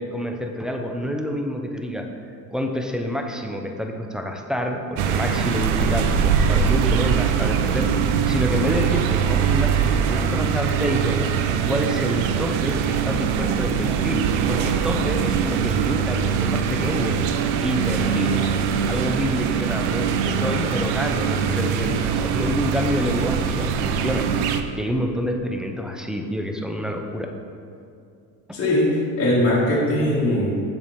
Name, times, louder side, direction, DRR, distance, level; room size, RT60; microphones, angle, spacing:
voice 1, 0.0-2.1 2.5-11.2 11.7-17.2 17.6-18.5 18.8-27.3 28.5-28.6, equal, ahead, 3 dB, 0.5 m, -28 dB
sound 1, 5.0-24.6, right 7 dB, 75° right, 0.5 m, -22 dB
voice 2, 28.5-30.5, left 1 dB, 35° left, -7 dB, 1.5 m, -20 dB
7.0 x 4.3 x 3.2 m, 2.4 s
hypercardioid pair, 75°, 41 cm